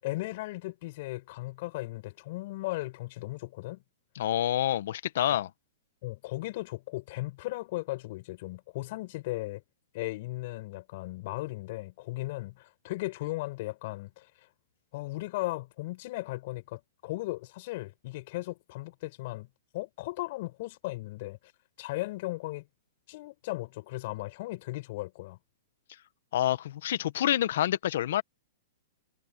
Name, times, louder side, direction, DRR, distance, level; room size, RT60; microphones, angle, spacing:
voice 1, 0.0-3.8 6.0-9.6 9.9-14.3 14.9-19.5 19.7-21.4 21.8-22.6 23.1-25.4, left 20 dB, 50° left, 5.6 m, -36 dB
voice 2, 4.1-5.5 26.3-28.2, left 12 dB, 65° left, 1.4 m, -27 dB
hypercardioid pair, 145°, 0 cm